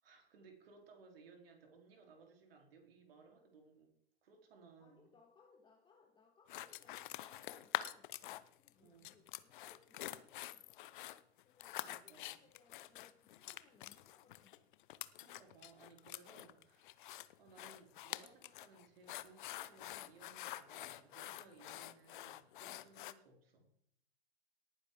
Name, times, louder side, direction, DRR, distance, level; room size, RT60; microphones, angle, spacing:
voice 1, 0.0-3.9 4.2-5.1 8.8-9.2 11.7-12.4 15.2-17.1 17.4-23.7, right 4 dB, 60° right, 2 dB, 3.7 m, -62 dB
voice 2, 4.8-10.9 11.4-14.7, left 5 dB, 15° left, 1 dB, 1.7 m, -69 dB
sound 1, 6.5-8.7 9.0-23.1, left 15 dB, 50° left, 0.7 m, -47 dB
18.5 x 9.7 x 3.7 m, 0.69 s
figure-of-eight pair, 100°, 32 cm